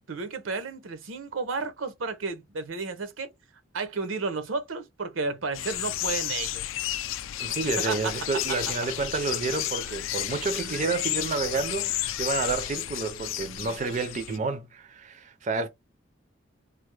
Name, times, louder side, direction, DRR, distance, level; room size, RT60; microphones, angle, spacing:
voice 1, 0.1-3.3 3.7-6.6 7.8-8.1, right 4 dB, 85° right, 0.7 m, -32 dB
sound 1, 5.5-14.4, left 13 dB, 80° left, 0.3 m, -32 dB
voice 2, 7.4-15.7, right 4 dB, 40° right, 0.4 m, -30 dB
3.3 x 2.0 x 3.1 m
head